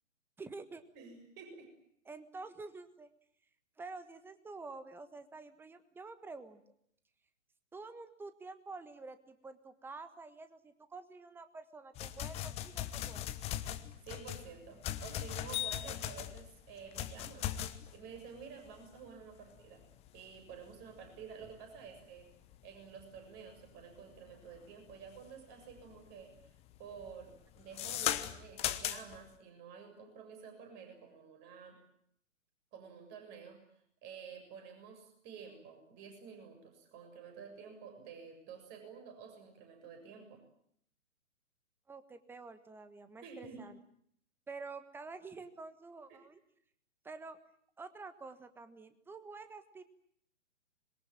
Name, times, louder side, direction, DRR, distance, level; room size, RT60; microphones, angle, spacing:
voice 1, 0.4-0.8 2.0-3.1 3.8-6.6 7.7-13.3 41.9-43.8 44.5-46.4 47.0-47.4 47.8-49.8, right 3 dB, 5° right, 11 dB, 1.4 m, -48 dB
voice 2, 0.9-1.7 14.0-19.8 20.1-22.3 22.6-26.3 26.8-31.8 32.7-33.6 34.0-40.4 43.2-43.6 46.1-46.2, right 6 dB, 25° right, 6 dB, 7.3 m, -51 dB
sound 1, 12.0-25.3 25.7-26.1 26.4-29.3, left 12 dB, 15° left, 1.1 m, -39 dB
26.0 x 22.0 x 8.9 m, 0.67 s
figure-of-eight pair, 130°, 38 cm